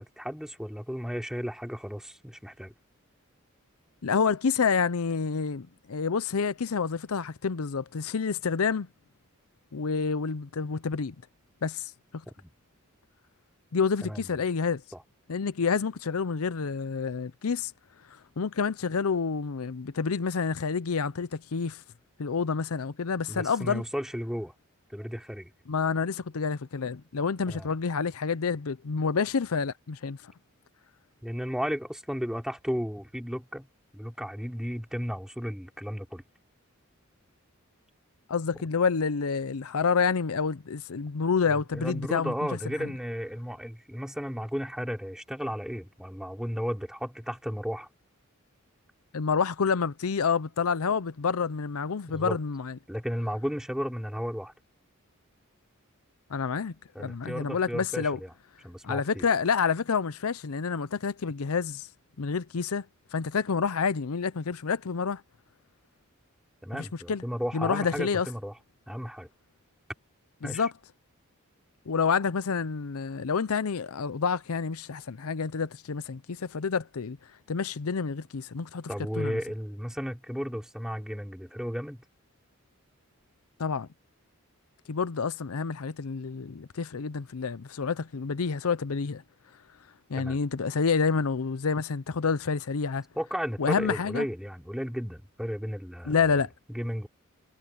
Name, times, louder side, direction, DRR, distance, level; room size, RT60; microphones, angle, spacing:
voice 1, 0.0-2.7 12.4-12.5 14.0-14.4 14.9-15.0 23.3-24.5 24.9-25.5 27.5-27.7 31.2-33.7 33.9-36.2 41.5-47.9 52.1-52.4 52.9-54.5 57.0-58.3 58.6-59.3 66.6-68.5 68.9-69.3 70.4-70.7 78.9-82.0 90.2-90.4 93.2-96.2 96.7-97.1, equal, 5° right, 3.4 m, -34 dB
voice 2, 4.0-8.9 9.7-11.1 11.6-12.2 13.7-14.8 15.3-17.7 18.4-21.8 22.2-23.8 25.7-30.3 38.3-42.3 49.1-52.7 56.3-58.2 58.8-61.9 62.2-62.8 63.1-65.2 66.7-67.2 67.5-68.3 70.4-70.7 71.9-77.2 77.5-78.9 79.2-79.4 83.6-83.9 84.9-89.2 90.1-93.0 93.6-94.3 96.1-96.5, left 5 dB, 80° left, 0.6 m, -28 dB
head